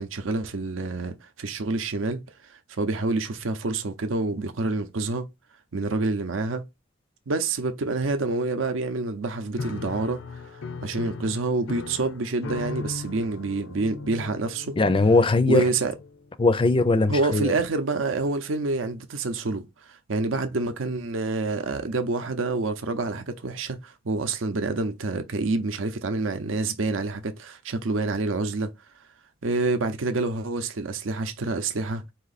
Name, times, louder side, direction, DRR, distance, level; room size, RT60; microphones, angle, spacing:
voice 1, 0.0-5.3 5.7-6.6 7.3-10.4 10.8-14.8 15.5-15.9 17.1-28.7 29.4-32.0, right 3 dB, 75° right, 0.7 m, -27 dB
Piano, 9.6-16.4, left 3 dB, 90° left, 0.6 m, -38 dB
voice 2, 14.8-15.7 16.4-17.5, left 3 dB, 25° left, 0.4 m, -20 dB
4.2 x 2.8 x 4.0 m
head